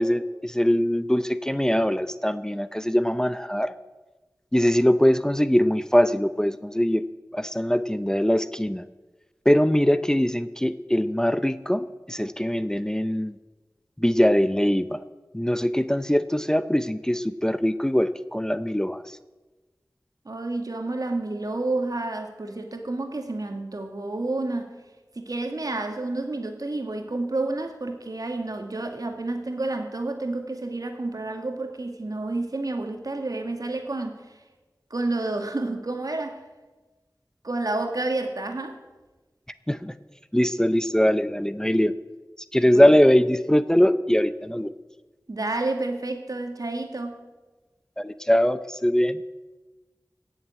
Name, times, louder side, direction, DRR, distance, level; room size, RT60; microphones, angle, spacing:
voice 1, 0.0-3.7 4.5-7.1 7.3-8.8 9.5-13.4 14.0-15.0 15.3-19.0 39.7-39.9 40.3-41.9 42.5-44.7 48.0-49.2, equal, 10° left, 13 dB, 0.6 m, -22 dB
voice 2, 20.3-24.8 25.2-34.2 34.9-36.4 37.4-38.8 42.6-42.9 45.3-47.2, right 2 dB, 70° right, 5 dB, 2.0 m, -30 dB
17.0 x 7.4 x 8.8 m, 1.2 s
wide cardioid pair, 40°, 6 cm